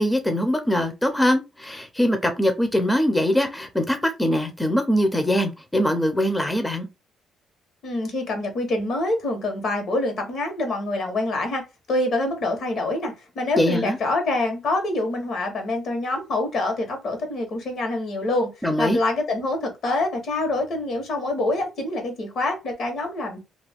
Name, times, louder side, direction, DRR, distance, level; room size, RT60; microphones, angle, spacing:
voice 1, 0.0-6.9 13.6-14.0 18.6-19.0, equal, 10° left, 0.5 m, -22 dB
voice 2, 7.8-11.6 11.9-18.5 18.8-23.4, left 2 dB, 65° left, 1.1 m, -26 dB
2.4 x 2.2 x 3.4 m
cardioid pair, 90°, 0 cm